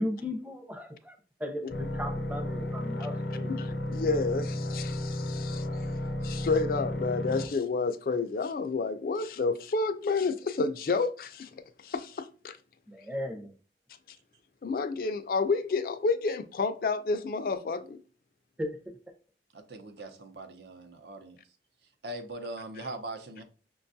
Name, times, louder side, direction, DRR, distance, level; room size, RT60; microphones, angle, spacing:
voice 1, 0.0-3.5 12.9-13.5 18.6-19.0, left 1 dB, 10° right, 0.6 m, -36 dB
sound 1, 1.7-7.5, left 1 dB, 85° left, 0.7 m, -33 dB
voice 2, 3.5-5.7 6.2-11.5 11.8-12.6 14.6-18.0, left 4 dB, 55° left, 0.4 m, -30 dB
voice 3, 19.5-21.4 22.0-23.4, right 2 dB, 70° right, 0.7 m, -41 dB
6.0 x 2.3 x 2.6 m
head